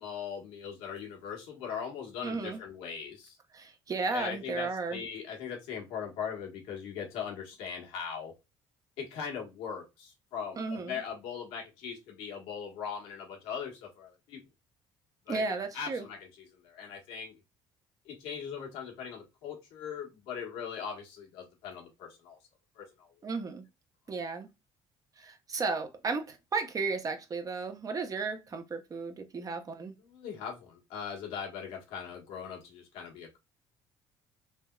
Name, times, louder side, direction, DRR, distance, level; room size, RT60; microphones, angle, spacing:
voice 1, 0.0-3.4 4.1-8.3 9.0-14.4 15.3-15.4 15.7-17.3 18.0-22.4 22.8-23.1 30.0-33.4, left 7 dB, 90° left, 1.3 m, -40 dB
voice 2, 2.2-2.6 3.5-5.0 10.6-11.0 15.3-16.1 23.2-23.6 24.1-24.5 25.2-29.9, right 4 dB, 35° right, 0.7 m, -34 dB
3.4 x 2.8 x 2.2 m
cardioid pair, 95°, 11 cm